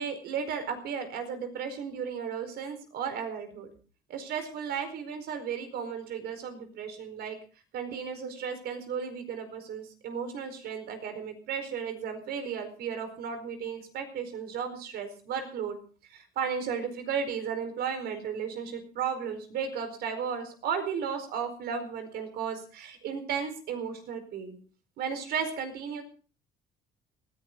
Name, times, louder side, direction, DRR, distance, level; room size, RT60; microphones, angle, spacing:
voice 1, 0.0-3.7 4.1-7.4 7.7-15.8 16.1-24.6 25.0-26.0, right 7 dB, 70° right, 8 dB, 4.6 m, -34 dB
19.0 x 15.5 x 3.9 m, 0.38 s
cardioid pair, 110°, 17 cm